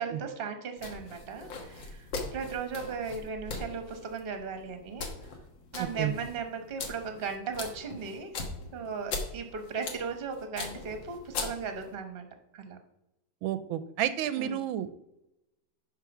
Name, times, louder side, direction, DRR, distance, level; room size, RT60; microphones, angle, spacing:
voice 1, 0.0-5.1 5.7-8.3 8.7-12.2 12.5-12.8 14.4-14.6, right 5 dB, 40° right, 6 dB, 1.0 m, -37 dB
sound 1, 0.8-11.9, left 3 dB, 70° left, 1.9 m, -40 dB
voice 2, 13.4-14.9, right 11 dB, 85° right, 13 dB, 1.4 m, -30 dB
10.5 x 3.5 x 6.0 m, 0.89 s
omnidirectional pair, 2.2 m